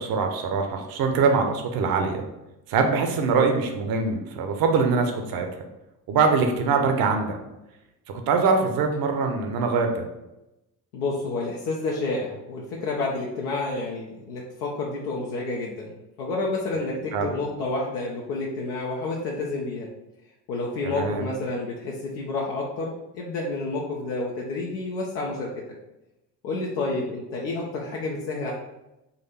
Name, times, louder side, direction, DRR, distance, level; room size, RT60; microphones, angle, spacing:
voice 1, 0.0-2.2 2.7-5.5 6.1-7.4 8.3-10.1 17.1-17.3 20.8-21.2, right 4 dB, 45° right, 4 dB, 0.8 m, -23 dB
voice 2, 10.9-15.9 16.2-19.9 20.5-25.5 26.4-28.5, left 3 dB, 70° left, -3 dB, 0.9 m, -29 dB
4.1 x 2.6 x 4.2 m, 0.94 s
figure-of-eight pair, 60°, 49 cm